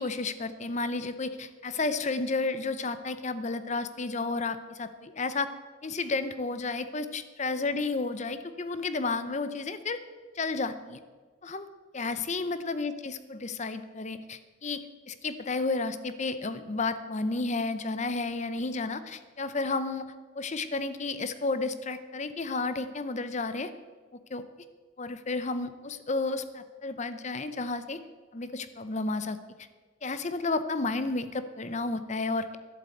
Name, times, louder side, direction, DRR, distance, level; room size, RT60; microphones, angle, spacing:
voice 1, 0.0-5.5 5.8-10.0 10.3-11.0 11.4-11.7 11.9-23.7 24.3-24.4 25.0-28.0 28.3-29.4 30.0-32.6, left 3 dB, 35° left, 12 dB, 0.7 m, -32 dB
12.0 x 8.1 x 7.9 m, 1.4 s
head